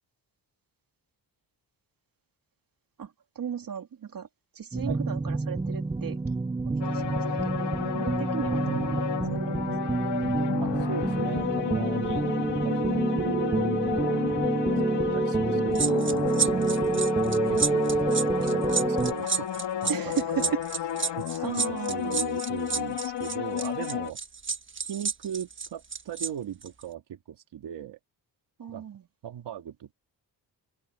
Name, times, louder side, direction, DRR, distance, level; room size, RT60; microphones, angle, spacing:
voice 1, 3.0-4.3 4.5-6.2 6.6-9.1 9.3-10.0 16.8-16.9 19.9-20.6 21.4-22.2 28.6-29.1, right 7 dB, 55° right, 2.7 m, -36 dB
sound 1, 4.7-19.1, right 3 dB, 10° right, 0.5 m, -27 dB
sound 2, 6.8-24.1, left 11 dB, 85° left, 2.8 m, -32 dB
voice 2, 10.6-12.2 12.6-14.3 14.9-16.1 16.3-18.0 18.4-20.5 21.2-24.2 24.9-28.0 28.7-28.9 29.2-29.9, right 9 dB, 85° right, 2.9 m, -38 dB
sound 3, 15.7-26.3 26.6-26.8, right 5 dB, 30° right, 1.5 m, -30 dB
open air
cardioid pair, 110°, 41 cm